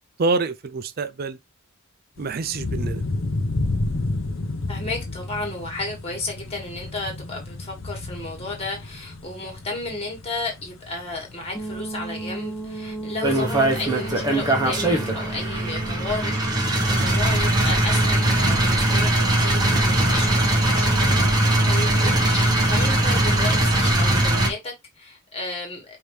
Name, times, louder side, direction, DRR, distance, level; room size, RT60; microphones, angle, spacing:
voice 1, 0.2-1.4 2.2-3.0, right 3 dB, 45° right, 0.4 m, -26 dB
sound 1, 2.2-15.2, left 2 dB, 65° left, 0.6 m, -32 dB
voice 2, 4.7-21.0 21.4-26.0, left 2 dB, 30° left, 1.7 m, -33 dB
sound 2, 11.5-23.9, right 3 dB, 15° left, 0.8 m, -35 dB
sound 3, 13.2-24.5, right 1 dB, 20° right, 0.9 m, -20 dB
5.0 x 2.8 x 3.2 m
head